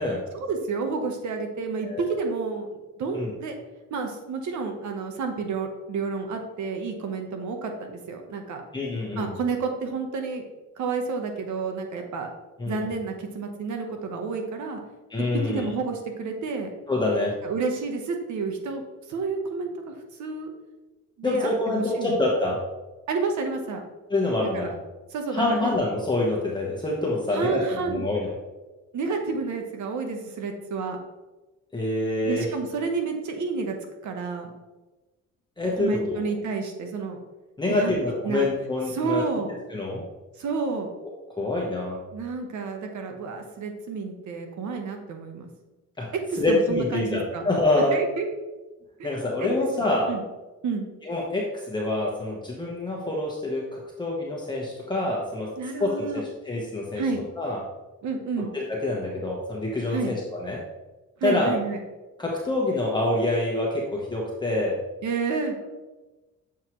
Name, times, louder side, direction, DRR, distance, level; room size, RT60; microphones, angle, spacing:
voice 1, 0.3-3.6 3.9-8.6 9.2-10.4 10.8-12.3 12.7-14.8 15.5-16.7 17.4-18.8 19.1-20.5 21.2-22.1 23.1-23.8 24.5-24.7 25.1-25.7 27.3-28.1 28.9-31.0 32.2-33.7 34.0-34.5 35.8-37.2 37.7-38.0 38.2-38.5 38.9-39.5 40.4-40.9 42.1-45.5 46.5-47.4 47.9-48.3 49.0-49.1 49.4-49.5 50.1-50.2 50.6-50.9 55.6-56.2 56.9-57.2 58.0-58.5 59.9-60.1 61.2-61.8 65.0-65.6, right 4 dB, 70° right, 4 dB, 1.2 m, -30 dB
voice 2, 1.8-2.2 3.1-3.3 8.7-9.3 12.6-12.9 15.1-15.7 16.9-17.4 21.2-22.6 24.1-24.7 25.3-28.3 31.7-32.5 35.6-36.3 37.6-39.2 39.7-40.0 41.4-42.0 46.0-48.0 49.0-50.1 51.0-55.5 55.8-57.0 57.4-57.6 58.4-60.6 61.2-61.5 62.2-64.8, left 2 dB, 15° left, -3 dB, 1.1 m, -26 dB
7.3 x 4.7 x 3.1 m, 1.1 s
cardioid pair, 90°, 30 cm